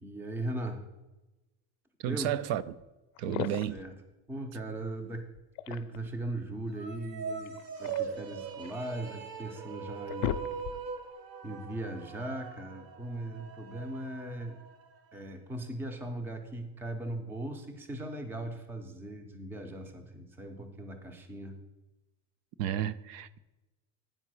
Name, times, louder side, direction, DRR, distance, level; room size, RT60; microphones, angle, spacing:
voice 1, 0.0-0.8 2.1-2.3 3.2-3.4 3.7-3.9 4.3-5.2 5.7-10.3 11.4-14.6 15.1-21.6, right 1 dB, 5° right, 6 dB, 0.4 m, -39 dB
voice 2, 2.0-2.8 3.2-3.8 22.6-23.4, right 11 dB, 85° right, 15 dB, 0.6 m, -32 dB
sound 1, 2.8-2.9 3.2-3.9 5.3-6.2 7.5-8.8 9.4-9.5 9.9-11.0, left 13 dB, 65° left, 0.5 m, -37 dB
sound 2, 6.7-15.2, right 6 dB, 45° right, 0.8 m, -41 dB
8.9 x 4.7 x 6.1 m, 1.1 s
cardioid pair, 155°, 48 cm